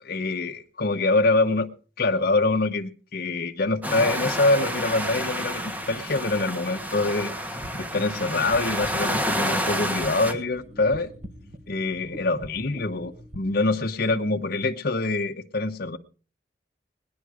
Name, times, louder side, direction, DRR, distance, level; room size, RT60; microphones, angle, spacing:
voice 1, 0.0-1.7 2.0-7.3 7.7-11.1 11.7-16.0, left 2 dB, 60° left, 0.9 m, -25 dB
sound 1, 3.8-10.3, equal, 10° right, 1.3 m, -29 dB
sound 2, 7.5-13.4, right 1 dB, 40° right, 1.1 m, -43 dB
Keyboard (musical), 9.4-12.0, left 4 dB, 65° right, 7.6 m, -51 dB
19.0 x 10.5 x 4.9 m
head